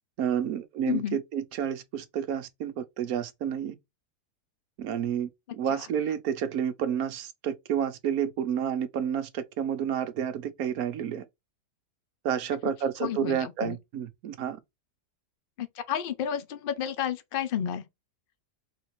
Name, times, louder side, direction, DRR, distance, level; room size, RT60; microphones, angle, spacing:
voice 1, 0.2-3.7 4.8-11.2 12.2-14.6, right 8 dB, 65° right, 1.2 m, -30 dB
voice 2, 0.9-1.2 13.0-13.8 15.6-17.8, left 9 dB, 50° left, 0.6 m, -31 dB
4.0 x 3.2 x 3.1 m
omnidirectional pair, 1.7 m